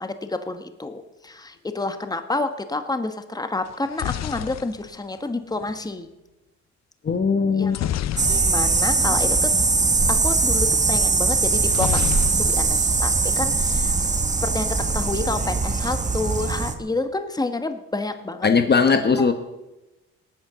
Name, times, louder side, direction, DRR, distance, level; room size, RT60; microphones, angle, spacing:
voice 1, 0.0-6.1 7.6-7.9 8.3-9.5 10.1-12.0 12.4-13.9 14.4-18.5 19.2-19.3, left 2 dB, 15° left, 8 dB, 1.3 m, -29 dB
sound 1, 3.7-5.8 7.7-8.9 9.2-9.3 9.6-9.8 11.7-12.9 13.2-13.8, left 11 dB, 60° left, 0.7 m, -30 dB
voice 2, 7.0-7.8 18.4-19.3, left 5 dB, 35° left, 8 dB, 1.1 m, -19 dB
sound 2, 8.2-16.8, right 3 dB, 25° right, 1.5 m, -21 dB
18.5 x 8.8 x 6.9 m, 1.0 s
cardioid pair, 90°, 30 cm